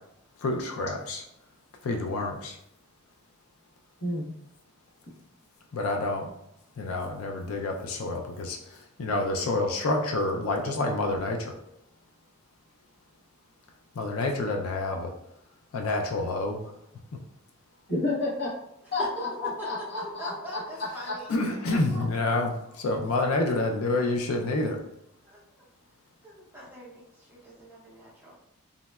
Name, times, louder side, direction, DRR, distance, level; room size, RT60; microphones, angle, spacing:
voice 1, 0.4-1.2 1.8-2.6 5.7-6.3 6.8-11.5 14.0-15.1 15.7-16.6 21.3-24.8, left 2 dB, 80° left, 2 dB, 0.4 m, -28 dB
voice 2, 4.0-4.3 17.9-18.5 18.9-20.6 21.1-21.2, left 2 dB, 50° left, -5 dB, 0.8 m, -30 dB
voice 3, 18.8-19.2 19.6-21.3 21.9-22.0 22.7-22.8 25.2-25.6 26.2-28.3, equal, 10° right, -6 dB, 0.6 m, -42 dB
3.7 x 2.0 x 2.2 m, 0.77 s
head